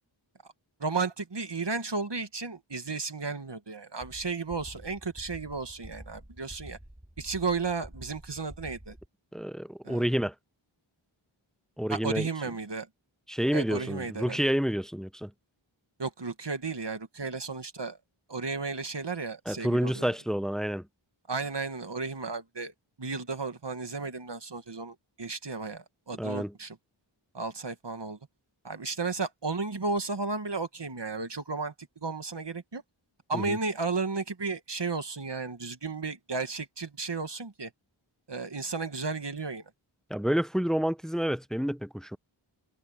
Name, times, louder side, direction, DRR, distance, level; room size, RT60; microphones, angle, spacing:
voice 1, 0.8-6.8 7.2-9.0 9.8-10.0 11.9-12.9 13.5-14.4 16.0-18.0 18.3-20.1 21.3-22.7 23.0-26.8 27.3-28.2 28.6-32.8 33.3-37.7 38.3-39.6, right 4 dB, 55° right, 1.9 m, -33 dB
sound 1, 4.0-9.1, right 1 dB, 15° right, 4.1 m, -48 dB
voice 2, 9.3-10.3 11.8-12.3 13.3-15.3 19.5-20.9 26.2-26.5 33.3-33.6 40.1-42.2, equal, ahead, 0.6 m, -29 dB
wide cardioid pair, 40°, 49 cm